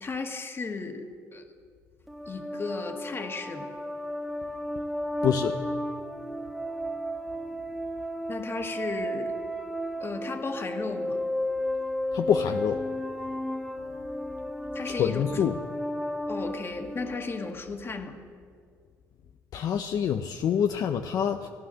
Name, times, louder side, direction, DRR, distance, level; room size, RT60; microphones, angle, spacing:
voice 1, 0.0-1.4 2.3-3.7 8.3-9.3 10.0-11.2 14.7-15.4 16.3-18.2, left 3 dB, 35° left, 5 dB, 1.5 m, -35 dB
sound 1, 2.1-17.5, left 1 dB, ahead, 1.5 m, -33 dB
voice 2, 5.2-5.6 12.1-12.8 14.9-15.5 19.5-21.5, left 8 dB, 60° left, 6 dB, 0.6 m, -26 dB
15.5 x 9.3 x 6.2 m, 2.2 s
supercardioid pair, 75°, 7 cm